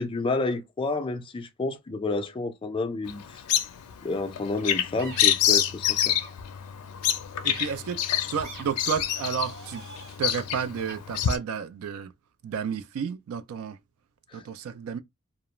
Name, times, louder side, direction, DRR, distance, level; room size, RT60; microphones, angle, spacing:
voice 1, 0.0-3.4 4.0-6.1 14.3-14.4, left 3 dB, 25° left, 0.3 m, -30 dB
Bird vocalization bird call bird song, 3.1-11.4, left 10 dB, 90° left, 0.4 m, -27 dB
sound 1, 5.0-5.2 6.1-6.3 7.5-7.7 8.4-8.6 9.3-10.2 10.9-11.0, right 2 dB, 45° right, 0.8 m, -43 dB
voice 2, 7.4-8.0 8.3-9.8 10.2-12.1 12.4-13.8 14.3-15.0, right 7 dB, 70° right, 0.3 m, -31 dB
2.3 x 2.0 x 2.9 m
head